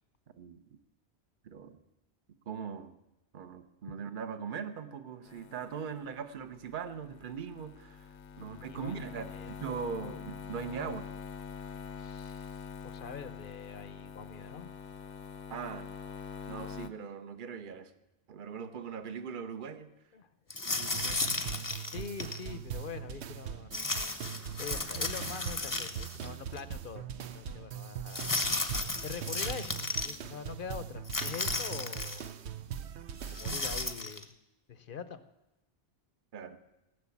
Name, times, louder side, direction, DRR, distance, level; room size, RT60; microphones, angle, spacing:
voice 1, 1.4-1.8 2.5-2.9 3.3-8.1 8.4-11.1 15.5-15.9 16.5-17.9 18.3-19.9 20.6-21.2 36.3-36.6, right 6 dB, 50° right, 10 dB, 1.0 m, -40 dB
sound 1, 5.2-16.9, left 6 dB, 75° left, 1.0 m, -45 dB
voice 2, 8.4-8.9 9.3-9.5 10.0-10.2 12.0-14.7 20.1-20.3 20.6-23.8 24.6-28.3 29.0-32.3 33.3-34.3 34.7-35.2, left 6 dB, 55° left, 13 dB, 0.8 m, -44 dB
sound 2, 20.5-22.4 23.7-26.3 26.6-26.7 28.1-30.1 31.0-32.3 33.2-34.2, left 3 dB, 20° left, 0.7 m, -34 dB
sound 3, 20.8-33.9, right 8 dB, 80° right, 1.0 m, -41 dB
17.0 x 6.7 x 8.4 m, 0.96 s
omnidirectional pair, 1.1 m